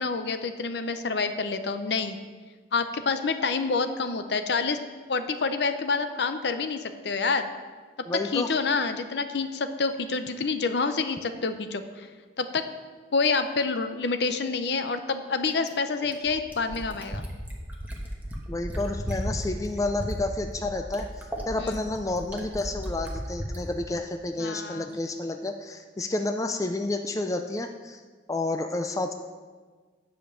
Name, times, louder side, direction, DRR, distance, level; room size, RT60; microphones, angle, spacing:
voice 1, 0.0-2.2 2.7-4.8 5.1-7.5 8.3-12.1 12.4-12.6 13.1-17.2 21.6-21.8 24.4-25.0, left 4 dB, 60° left, 9 dB, 0.6 m, -28 dB
voice 2, 8.1-8.5 18.5-28.0 28.3-29.1, left 2 dB, 20° left, 6 dB, 0.4 m, -30 dB
Fill (with liquid), 15.5-23.6 24.9-25.0, equal, 10° right, 1.2 m, -35 dB
9.4 x 5.2 x 7.3 m, 1.5 s
head